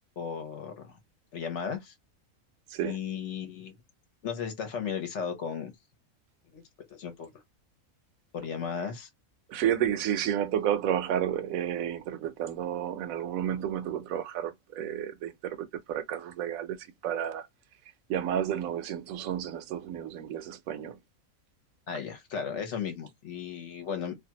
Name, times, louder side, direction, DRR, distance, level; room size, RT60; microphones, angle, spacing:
voice 1, 0.2-1.0 1.3-1.9 2.8-3.7 4.2-5.7 6.5-6.6 6.9-7.3 8.3-9.1 21.9-24.1, left 7 dB, 55° left, 1.1 m, -35 dB
voice 2, 9.5-17.5 18.1-21.0, right 10 dB, 75° right, 0.9 m, -31 dB
2.6 x 2.4 x 2.7 m
omnidirectional pair, 1.5 m